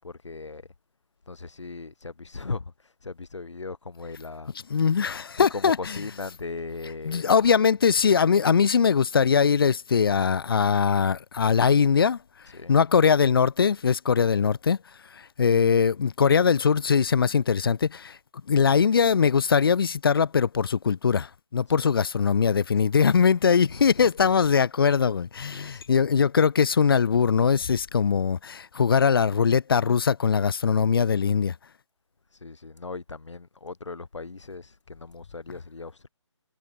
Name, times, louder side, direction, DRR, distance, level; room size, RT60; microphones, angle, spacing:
voice 1, 0.0-0.7 1.3-4.9 5.4-7.3 12.5-12.7 21.7-21.9 23.7-24.3 25.4-25.8 32.3-36.1, left 4 dB, 70° left, 7.1 m, -38 dB
voice 2, 4.7-6.0 7.1-12.2 12.7-14.8 15.1-18.2 18.5-31.6, left 6 dB, 45° left, 0.6 m, -21 dB
figure-of-eight pair, 155°, 16 cm